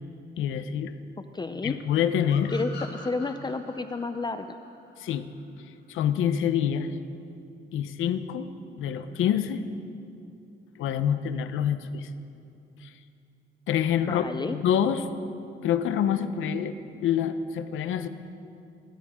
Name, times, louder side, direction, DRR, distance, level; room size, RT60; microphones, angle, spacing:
voice 1, 0.4-0.9 1.6-2.5 5.0-5.3 5.9-6.9 7.7-8.5 8.8-9.6 10.8-12.1 12.8-12.9 13.7-15.1 15.6-16.7 17.0-18.1, left 9 dB, 80° left, 10 dB, 0.9 m, -26 dB
voice 2, 1.3-1.7 2.5-2.7 3.0-4.6 14.1-14.6, left 3 dB, 20° left, 9 dB, 0.6 m, -31 dB
sound 1, 2.3-5.7, left 4 dB, 60° left, 3.7 m, -45 dB
27.5 x 14.0 x 3.7 m, 2.6 s
cardioid pair, 90°, 20 cm